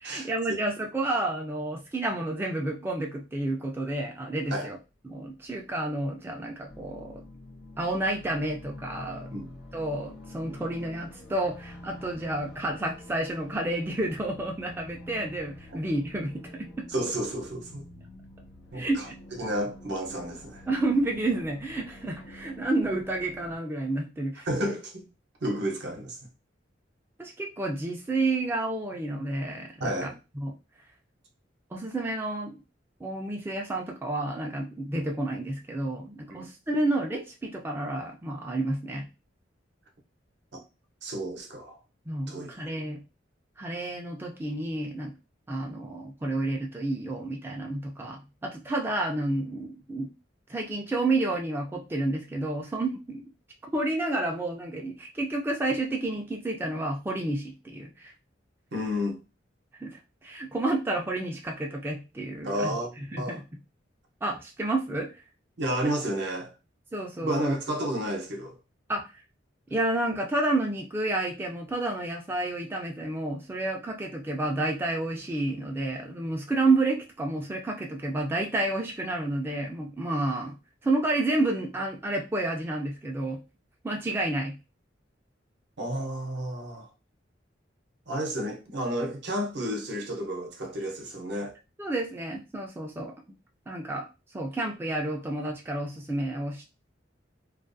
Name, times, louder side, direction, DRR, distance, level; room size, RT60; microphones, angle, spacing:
voice 1, 0.0-4.8 5.0-7.2 7.8-9.3 9.7-16.9 18.7-19.1 20.7-24.5 27.2-30.1 30.4-30.5 31.7-32.6 33.0-39.1 42.1-43.0 43.6-45.1 45.5-50.1 50.5-53.2 53.7-58.1 59.7-62.8 63.1-63.4 64.2-65.1 66.9-67.6 68.9-69.2 69.7-80.6 80.8-83.4 83.8-84.6 91.8-93.1 93.7-94.1 94.3-96.7, right 2 dB, 10° right, 0.3 m, -30 dB
sound 1, 6.7-23.6, left 1 dB, 65° left, 0.4 m, -47 dB
voice 2, 16.9-17.9 18.7-19.1 19.4-20.6 24.5-25.1 25.4-26.2 29.8-30.2 36.3-36.5 40.5-40.6 41.0-41.8 42.3-42.6 58.7-59.2 62.4-63.4 65.6-66.5 67.2-68.6 85.8-86.9 88.1-91.5, equal, 65° right, 0.7 m, -31 dB
2.4 x 2.2 x 2.5 m
head